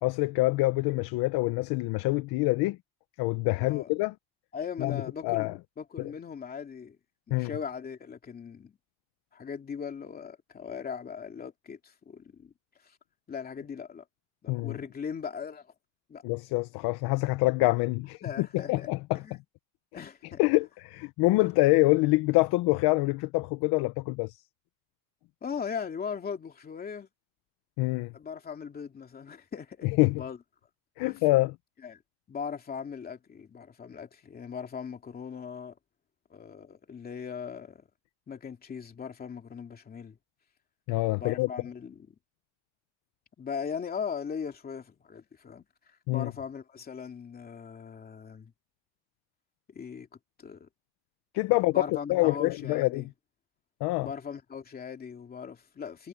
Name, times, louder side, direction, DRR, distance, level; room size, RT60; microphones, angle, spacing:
voice 1, 0.0-2.8 3.2-4.1 4.8-5.5 6.0-6.1 7.3-7.5 14.5-14.8 16.2-19.2 20.4-24.4 27.8-28.1 29.8-30.2 31.0-31.5 40.9-41.5 46.1-46.3 51.3-53.1 53.8-54.1, left 21 dB, 65° left, 0.8 m, -26 dB
voice 2, 3.6-3.9 4.5-7.0 7.3-8.8 9.3-12.5 13.3-14.0 14.4-15.7 16.1-16.2 18.2-18.9 19.1-19.4 19.9-20.4 25.4-27.1 28.1-30.4 31.0-31.2 31.8-32.0 32.3-35.8 36.3-37.8 38.3-40.2 41.2-42.1 43.4-45.6 46.1-48.5 49.7-50.1 50.4-50.7 51.5-53.1 54.0-56.1, left 6 dB, 20° left, 2.7 m, -39 dB
cardioid pair, 180°, 41 cm